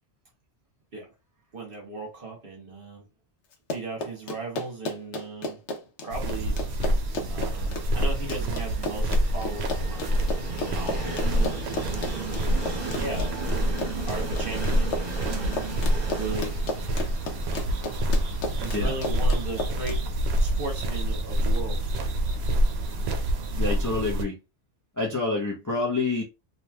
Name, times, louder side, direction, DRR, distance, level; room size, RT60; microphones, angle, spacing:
voice 1, 1.5-3.0 3.7-5.6 6.0-6.6 7.3-11.5 12.3-13.5 14.0-15.6 16.1-16.5 17.8-20.0 20.4-21.9, right 2 dB, 50° right, 1.2 m, -37 dB
Run, 3.5-20.0, left 2 dB, 75° left, 0.9 m, -33 dB
sound 1, 6.1-24.2, right 1 dB, 70° right, 0.8 m, -27 dB
Train, 7.0-22.9, right 3 dB, 35° right, 1.4 m, -38 dB
voice 2, 23.5-24.4 25.0-26.2, left 3 dB, 20° left, 0.5 m, -27 dB
3.1 x 2.6 x 2.2 m
omnidirectional pair, 1.2 m